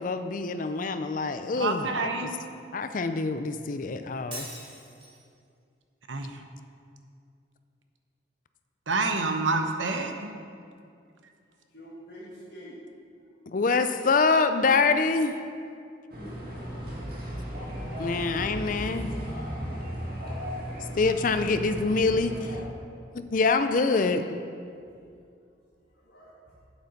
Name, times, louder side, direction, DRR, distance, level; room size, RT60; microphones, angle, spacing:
voice 1, 0.0-2.1 2.7-4.5 13.5-15.3 18.0-19.1 21.0-22.3 23.1-24.4, left 4 dB, 45° left, 9 dB, 0.5 m, -25 dB
voice 2, 1.6-2.4 6.1-6.4 8.9-10.3, right 3 dB, 85° right, 5 dB, 0.9 m, -28 dB
Shatter, 4.3-5.3, right 1 dB, 30° right, 2.4 m, -41 dB
voice 3, 11.7-12.8 19.0-19.8 25.9-26.5, equal, 65° left, -9 dB, 2.1 m, -46 dB
sound 1, 16.1-22.6, equal, 55° right, 1.7 m, -35 dB
8.3 x 7.8 x 5.3 m, 2.4 s
head